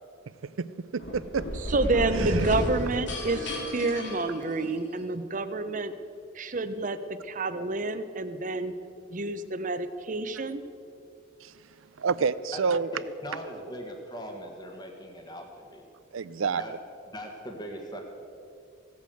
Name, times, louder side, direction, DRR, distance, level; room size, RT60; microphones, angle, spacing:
voice 1, 0.9-1.4 2.1-2.5 11.4-11.5 12.0-12.9 16.1-16.6, right 5 dB, 75° right, 16 dB, 0.5 m, -28 dB
sound 1, 1.0-5.0, equal, 60° left, 2.1 m, -33 dB
voice 2, 1.7-5.9 6.3-8.7 9.1-10.6, right 2 dB, 40° right, 10 dB, 0.7 m, -29 dB
voice 3, 12.9-15.9 16.6-16.7 17.1-18.0, equal, 20° left, 2 dB, 1.6 m, -40 dB
16.5 x 8.4 x 7.8 m, 2.6 s
head